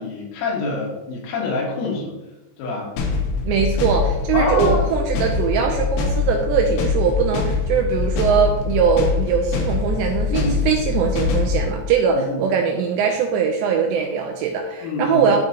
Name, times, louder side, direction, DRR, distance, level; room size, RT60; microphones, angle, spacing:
voice 1, 0.0-2.1 2.6-2.9 4.3-4.9 10.3-10.6 12.1-12.5 14.8-15.3, left 3 dB, 90° left, -3 dB, 4.5 m, -26 dB
sound 1, 3.0-11.7, left 5 dB, 75° left, 2.8 m, -23 dB
voice 2, 3.5-15.4, right 6 dB, 80° right, 2 dB, 2.6 m, -21 dB
14.0 x 4.8 x 2.9 m, 1.0 s
omnidirectional pair, 5.6 m